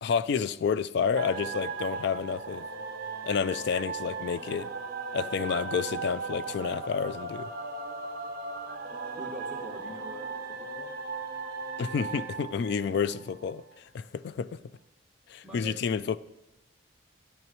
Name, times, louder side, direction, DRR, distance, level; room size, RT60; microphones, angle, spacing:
voice 1, 0.0-2.6 3.2-4.7 5.1-7.5 11.8-13.6 13.9-14.6 15.3-16.2, left 6 dB, 55° left, 0.3 m, -29 dB
sound 1, 1.1-13.7, right 4 dB, 50° right, 0.7 m, -37 dB
voice 2, 9.2-10.9 15.4-15.8, equal, 5° right, 1.7 m, -44 dB
13.5 x 10.5 x 3.1 m
head